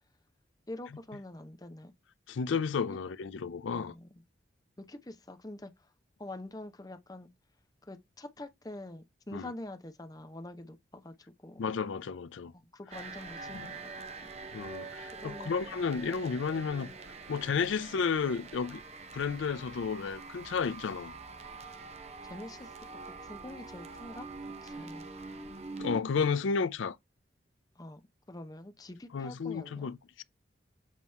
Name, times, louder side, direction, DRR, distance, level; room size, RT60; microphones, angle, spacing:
voice 1, 0.7-1.9 3.7-4.1 4.8-5.9 6.2-7.3 7.8-11.6 12.5-14.3 15.1-15.7 16.8-17.0 22.2-22.7 23.0-24.3 24.6-25.1 27.8-28.0 28.3-29.9, left 1 dB, 20° left, 0.6 m, -46 dB
voice 2, 2.3-3.9 9.3-9.5 11.6-12.5 13.5-13.6 14.5-16.9 17.3-18.8 19.1-21.1 25.8-27.0 29.1-30.2, left 5 dB, 80° left, 0.4 m, -32 dB
sound 1, 12.9-26.0, right 4 dB, 35° right, 0.7 m, -45 dB
7.4 x 3.0 x 5.3 m
head